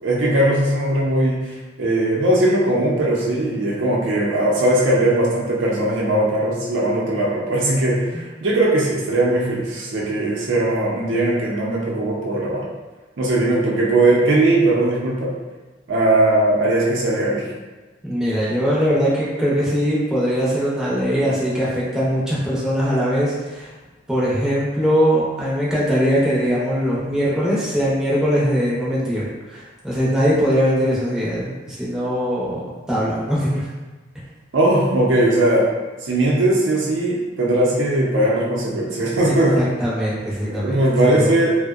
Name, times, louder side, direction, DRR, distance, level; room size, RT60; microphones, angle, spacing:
voice 1, 0.0-12.7 13.2-15.3 15.9-17.5 34.5-35.7 36.0-39.6 40.5-41.5, right 1 dB, 75° right, -4 dB, 0.5 m, -19 dB
voice 2, 18.0-23.7 24.1-32.6 32.9-33.6 39.6-41.3, equal, 5° right, -8 dB, 0.6 m, -21 dB
2.6 x 2.0 x 2.3 m, 1.2 s
head